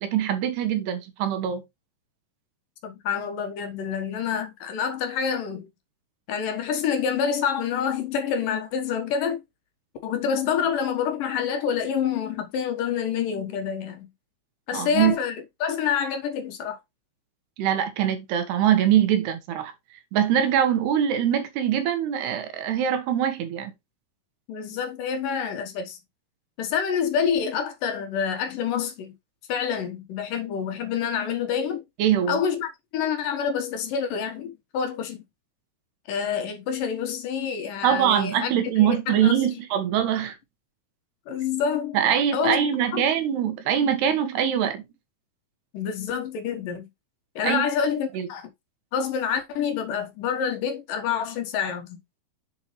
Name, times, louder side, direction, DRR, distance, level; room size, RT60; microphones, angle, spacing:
voice 1, 0.0-1.6 14.7-15.1 17.6-19.7 20.1-23.7 32.0-32.4 37.8-40.4 41.9-44.8 47.4-47.6 48.2-48.3, right 9 dB, 90° right, 3.5 m, -23 dB
voice 2, 2.8-5.7 6.3-9.4 10.0-14.1 14.7-16.8 24.5-26.0 26.6-29.1 29.5-31.8 32.3-35.2 36.1-39.6 41.3-42.0 42.3-42.6 42.9-43.1 45.7-46.9 47.4-48.5 48.9-52.0, left 7 dB, 65° left, 2.7 m, -27 dB
7.7 x 7.2 x 3.2 m
omnidirectional pair, 4.6 m